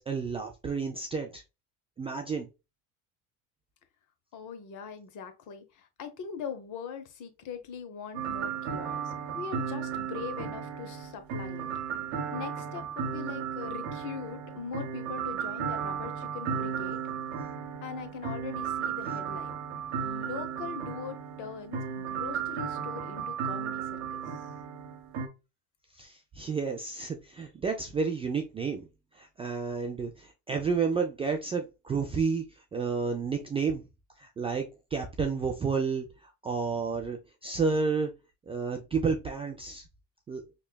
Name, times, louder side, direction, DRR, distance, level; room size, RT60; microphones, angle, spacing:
voice 1, 0.0-1.4 2.0-2.5 26.0-28.8 29.2-32.4 32.7-33.8 34.2-34.6 34.9-36.0 36.4-38.1 38.5-39.8 40.3-40.4, right 5 dB, 15° right, 0.3 m, -30 dB
voice 2, 4.3-11.7 12.3-17.0 17.8-19.5 19.9-24.4, left 7 dB, 45° left, 0.8 m, -41 dB
sound 1, 8.1-25.3, right 7 dB, 65° right, 0.9 m, -35 dB
5.1 x 2.2 x 2.2 m
hypercardioid pair, 75°, 43 cm